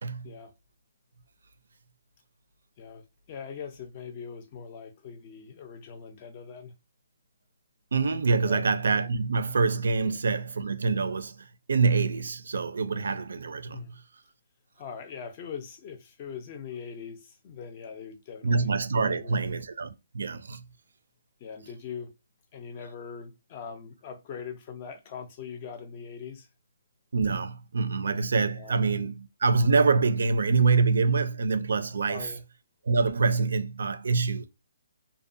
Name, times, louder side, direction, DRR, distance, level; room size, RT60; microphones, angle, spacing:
voice 1, 2.8-6.7 8.4-8.7 10.0-10.3 13.7-13.9 14.8-18.7 19.0-19.6 21.4-22.1 22.5-26.5 28.6-28.8 32.0-32.4, left 6 dB, 30° left, 0.4 m, -41 dB
voice 2, 7.9-13.9 18.4-20.6 27.1-32.3 32.9-34.5, right 4 dB, 75° right, 0.4 m, -25 dB
2.5 x 2.1 x 2.5 m
hypercardioid pair, 165°, 0 cm